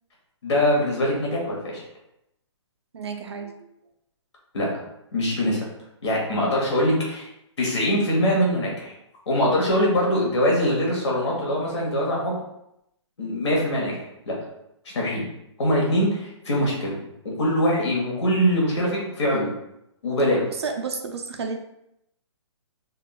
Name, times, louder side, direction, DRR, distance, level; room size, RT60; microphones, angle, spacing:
voice 1, 0.4-1.8 4.5-4.7 5.1-5.6 6.0-7.3 7.6-8.9 9.3-12.4 13.2-14.4 14.9-15.2 15.6-19.5 20.0-20.4, equal, 65° left, -3 dB, 1.3 m, -23 dB
voice 2, 2.9-3.5 20.6-21.6, right 5 dB, 60° right, 4 dB, 0.4 m, -31 dB
3.6 x 2.4 x 2.3 m, 0.82 s
hypercardioid pair, 175°, 16 cm